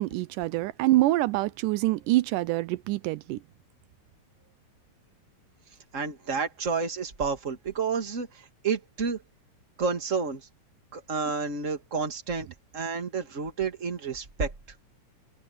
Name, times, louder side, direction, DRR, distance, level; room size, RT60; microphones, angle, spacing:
voice 1, 0.0-3.4, right 17 dB, 85° right, 2.2 m, -25 dB
voice 2, 5.9-9.2 9.8-10.4 10.9-12.5 12.7-14.5, right 5 dB, 25° right, 2.4 m, -30 dB
open air
omnidirectional pair, 3.7 m